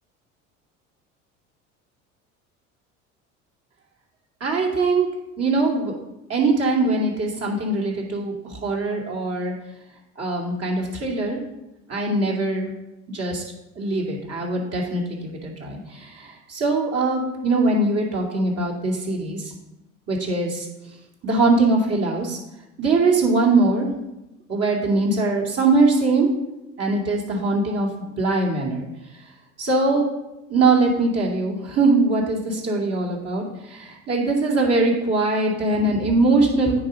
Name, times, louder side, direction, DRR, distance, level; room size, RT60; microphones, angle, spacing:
voice 1, 4.4-5.1 5.4-5.9 6.3-9.5 10.2-11.4 11.9-12.7 13.1-13.4 13.8-19.4 20.1-20.7 21.2-22.4 22.8-23.9 24.5-26.3 26.8-27.9 28.2-28.8 29.6-30.1 30.5-36.8, right 3 dB, 40° right, -1 dB, 2.5 m, -21 dB
9.2 x 4.0 x 5.1 m, 0.93 s
hypercardioid pair, 70°, 38 cm